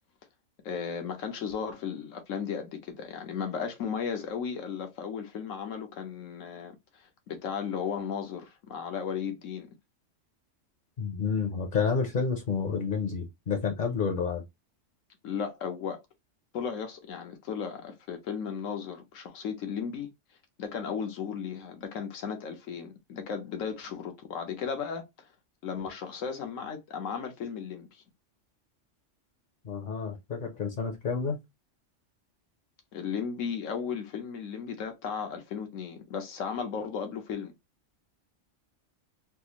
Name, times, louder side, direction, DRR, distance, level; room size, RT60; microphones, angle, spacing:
voice 1, 0.6-9.7 15.2-16.0 16.5-20.1 20.6-25.0 25.6-28.0 32.9-37.5, left 6 dB, 90° left, 1.2 m, -35 dB
voice 2, 11.0-14.4 29.6-31.4, left 5 dB, 50° left, 0.7 m, -29 dB
3.5 x 2.4 x 2.8 m
omnidirectional pair, 1.3 m